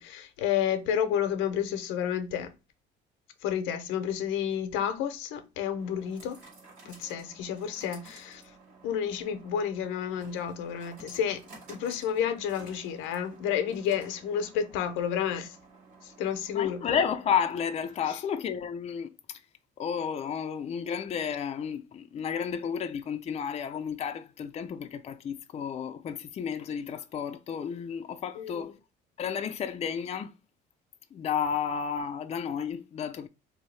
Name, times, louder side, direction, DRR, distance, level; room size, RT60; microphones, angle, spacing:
voice 1, 0.0-2.5 3.4-6.4 6.8-8.4 8.8-11.4 11.7-15.6 16.0-16.8 18.1-18.2 28.3-28.7, left 9 dB, 90° left, 0.6 m, -30 dB
sound 1, 4.3-18.3, right 3 dB, 85° right, 2.1 m, -54 dB
voice 2, 16.5-19.4 19.8-28.7 29.2-30.3 31.1-33.3, left 7 dB, 35° left, 0.4 m, -32 dB
3.4 x 2.7 x 3.1 m
cardioid pair, 95°, 20 cm